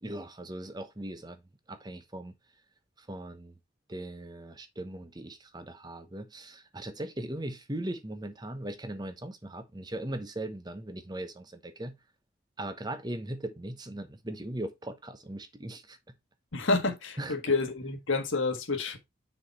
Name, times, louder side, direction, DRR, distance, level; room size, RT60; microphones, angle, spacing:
voice 1, 0.0-1.4 1.7-2.3 3.0-3.5 3.9-12.0 12.6-16.0 17.2-17.3, right 1 dB, 20° right, 0.9 m, -39 dB
voice 2, 16.5-19.0, left 3 dB, 70° left, 1.5 m, -29 dB
6.5 x 4.9 x 4.1 m
head